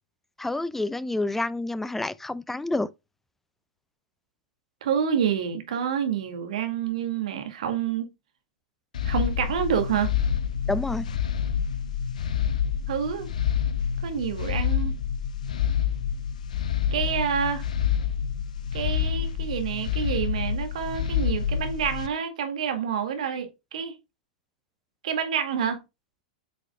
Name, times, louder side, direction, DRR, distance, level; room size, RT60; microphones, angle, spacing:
voice 1, 0.4-2.9 10.7-11.1, left 2 dB, 5° left, 0.4 m, -28 dB
voice 2, 4.8-8.1 9.0-10.1 12.9-13.3 14.0-15.0 16.9-17.7 18.7-24.0 25.0-25.8, right 8 dB, 65° right, 2.1 m, -28 dB
sound 1, 8.9-22.1, left 8 dB, 75° left, 0.8 m, -27 dB
8.5 x 6.1 x 2.3 m
figure-of-eight pair, 100°, 4 cm